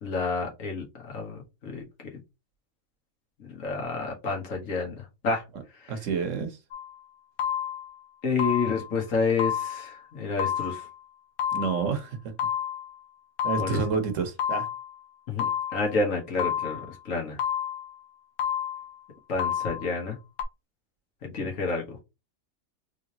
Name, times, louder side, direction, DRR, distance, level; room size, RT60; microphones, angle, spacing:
voice 1, 0.0-2.1 3.4-5.4 5.8-5.9 8.2-10.9 13.6-13.8 15.3-17.4 19.3-20.2 21.2-22.0, left 4 dB, 70° left, 1.6 m, -29 dB
voice 2, 5.9-6.6 11.5-12.2 13.4-14.7, right 5 dB, 65° right, 1.2 m, -28 dB
sound 1, 6.7-7.0 7.4-8.0 8.4-9.0 9.4-10.0 10.4-11.0 11.4-12.0 12.4-13.0 13.4-14.0 14.4-15.0 15.4-16.0 16.4-17.0 17.4-18.0 18.4-19.0 19.4-20.0 20.4-20.5, left 9 dB, 85° left, 1.2 m, -30 dB
3.8 x 3.3 x 2.8 m
omnidirectional pair, 1.4 m